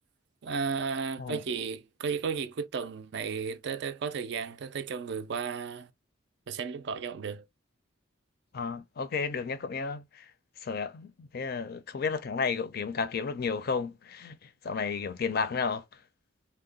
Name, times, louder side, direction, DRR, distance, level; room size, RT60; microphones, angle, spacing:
voice 1, 0.4-5.9 6.5-7.4, right 5 dB, 55° right, 0.4 m, -34 dB
voice 2, 8.5-10.3 10.6-16.0, left 5 dB, 45° left, 0.4 m, -32 dB
2.8 x 2.1 x 3.8 m
head